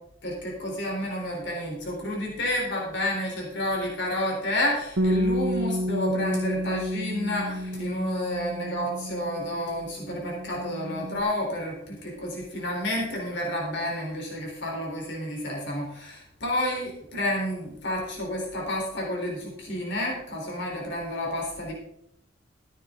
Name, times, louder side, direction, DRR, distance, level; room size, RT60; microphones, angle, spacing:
voice 1, 0.2-21.7, left 1 dB, 65° left, -1 dB, 3.7 m, -30 dB
Bass guitar, 5.0-9.7 9.9-11.2, equal, 75° right, 0.9 m, -30 dB
14.5 x 9.5 x 3.7 m, 0.75 s
head